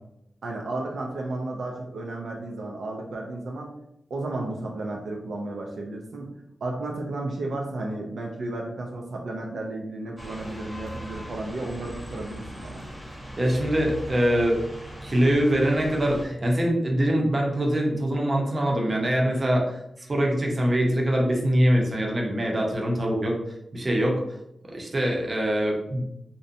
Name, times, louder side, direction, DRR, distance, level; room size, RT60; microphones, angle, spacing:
voice 1, 0.4-3.7 4.1-12.8, right 2 dB, 85° right, 0 dB, 0.3 m, -33 dB
sound 1, 10.2-16.3, equal, ahead, 0.8 m, -39 dB
voice 2, 13.4-14.6 15.0-23.3 23.7-24.2 24.7-26.1, equal, 35° right, -1 dB, 0.6 m, -23 dB
2.5 x 2.1 x 2.6 m, 0.83 s
wide cardioid pair, 85°, 0 cm